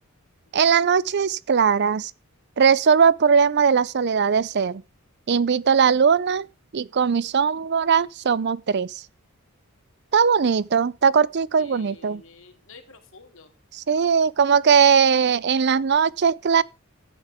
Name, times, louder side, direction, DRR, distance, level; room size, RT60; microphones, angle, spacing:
voice 1, 0.5-2.1 2.6-4.8 5.3-6.5 6.7-8.9 10.1-12.2 13.9-16.6, right 6 dB, 50° right, 0.5 m, -19 dB
voice 2, 11.6-13.5, left 4 dB, 65° left, 2.7 m, -49 dB
15.0 x 8.9 x 3.6 m
head